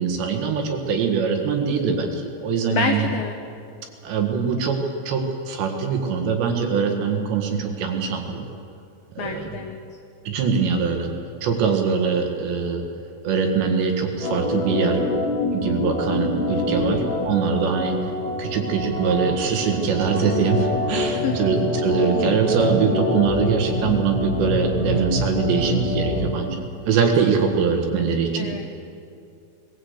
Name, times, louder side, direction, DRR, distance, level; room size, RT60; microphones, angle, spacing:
voice 1, 0.0-3.1 4.0-4.8 5.1-8.4 9.2-9.6 10.3-11.1 11.4-12.8 13.2-15.1 15.5-18.0 18.4-28.5, right 6 dB, 70° right, 3 dB, 3.8 m, -23 dB
voice 2, 2.7-3.4 9.2-9.8 16.8-17.3 20.9-21.5 28.4-28.6, left 6 dB, 75° left, 4 dB, 2.1 m, -28 dB
Organ, 14.2-26.4, left 2 dB, 50° left, 2.2 m, -25 dB
20.0 x 17.0 x 8.2 m, 2.5 s
omnidirectional pair, 5.6 m